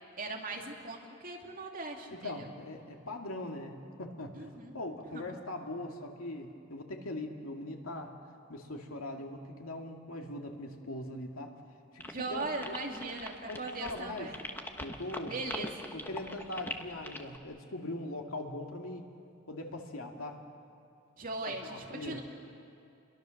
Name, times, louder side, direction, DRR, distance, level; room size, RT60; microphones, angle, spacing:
voice 1, 0.2-2.5 4.3-4.7 5.1-5.2 12.1-14.4 15.3-15.7 21.2-22.2, right 3 dB, 40° right, 0 dB, 2.7 m, -39 dB
voice 2, 2.1-8.1 8.5-11.5 11.9-12.8 13.5-14.3 14.8-19.1 19.5-20.4 21.4-22.2, left 1 dB, 85° left, 2 dB, 2.4 m, -41 dB
sound 1, 12.0-17.4, left 1 dB, 10° left, 1.2 m, -42 dB
29.5 x 22.5 x 6.6 m, 2.5 s
head